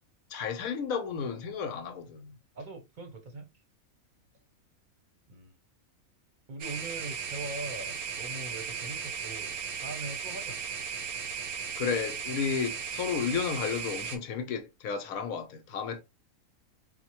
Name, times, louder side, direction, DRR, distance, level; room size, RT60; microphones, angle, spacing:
voice 1, 0.3-2.3 11.8-16.0, left 6 dB, 80° left, 1.1 m, -32 dB
voice 2, 2.5-3.5 5.3-5.5 6.5-10.6, right 2 dB, 40° right, 0.8 m, -41 dB
sound 1, 6.6-14.2, right 6 dB, 85° right, 1.2 m, -36 dB
4.3 x 2.1 x 2.9 m
omnidirectional pair, 1.5 m